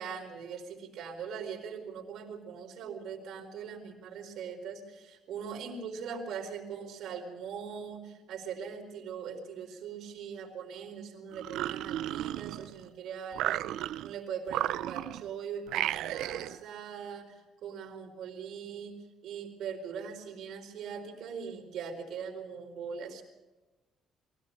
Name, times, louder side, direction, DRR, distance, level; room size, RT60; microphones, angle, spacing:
voice 1, 0.0-13.7 14.0-23.2, right 6 dB, 65° right, 2 dB, 4.5 m, -41 dB
sound 1, 11.3-12.9 13.3-14.1 14.5-15.3 15.7-16.6, right 13 dB, 80° right, 0.6 m, -33 dB
23.5 x 17.0 x 6.5 m, 1.1 s
cardioid pair, 155°, 0 cm